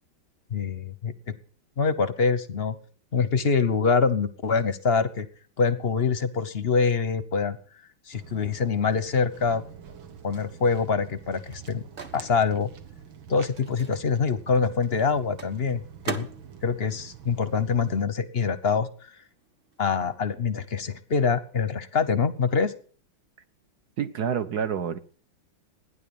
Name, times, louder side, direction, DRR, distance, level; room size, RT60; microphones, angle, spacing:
voice 1, 0.5-1.3 1.8-2.7 3.1-5.3 5.6-7.6 8.1-9.6 10.2-11.8 12.1-12.7 13.3-16.3 16.6-18.9 19.8-22.7, left 5 dB, 40° left, 13 dB, 0.9 m, -25 dB
Walk footsteps, 8.1-18.0, right 7 dB, 80° right, 2.3 m, -46 dB
Microwave oven, 11.1-18.2 18.5-20.4, right 5 dB, 30° right, 1.2 m, -43 dB
voice 2, 24.0-25.0, right 7 dB, 55° right, 10 dB, 1.4 m, -28 dB
15.0 x 10.5 x 7.0 m, 0.44 s
omnidirectional pair, 2.2 m